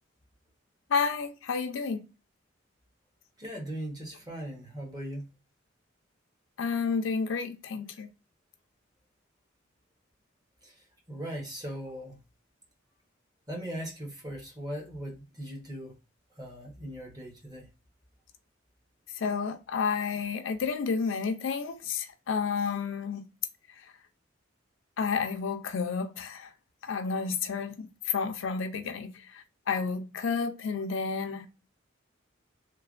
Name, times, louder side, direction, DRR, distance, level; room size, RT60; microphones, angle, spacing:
voice 1, 0.9-2.0 6.6-8.1 19.2-23.2 25.0-26.5 26.8-29.1 29.7-31.5, left 5 dB, 75° left, 0.4 m, -30 dB
voice 2, 3.4-5.3 10.6-10.7 11.1-12.2 13.5-15.9 16.4-17.7, equal, 20° right, 0.9 m, -39 dB
3.2 x 2.1 x 2.4 m
head